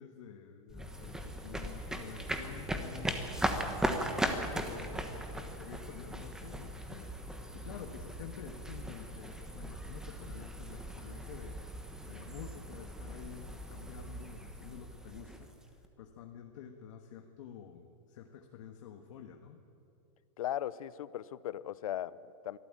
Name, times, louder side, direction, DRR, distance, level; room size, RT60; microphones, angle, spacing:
voice 1, 0.0-11.6 12.0-19.6, left 8 dB, 65° left, 4 dB, 1.5 m, -49 dB
sound 1, 0.7-15.9, right 1 dB, 5° right, 1.2 m, -39 dB
voice 2, 20.4-22.6, left 11 dB, 90° left, 18 dB, 0.8 m, -38 dB
24.0 x 13.5 x 9.0 m, 2.9 s
supercardioid pair, 160°, 18 cm